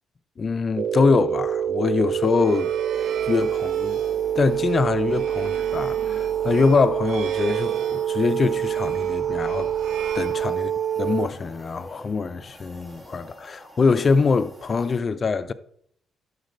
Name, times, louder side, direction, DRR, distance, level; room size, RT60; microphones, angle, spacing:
voice 1, 0.4-2.7 3.2-4.0 4.4-9.7 10.1-10.7 11.0-15.5, left 4 dB, 40° left, 0.5 m, -23 dB
sound 1, 0.8-11.3, right 9 dB, 50° right, 0.3 m, -26 dB
sound 2, 2.0-11.0, right 8 dB, 75° right, 0.7 m, -39 dB
sound 3, 2.9-15.0, equal, 15° right, 1.4 m, -47 dB
11.5 x 4.1 x 5.3 m
cardioid pair, 90°, 0 cm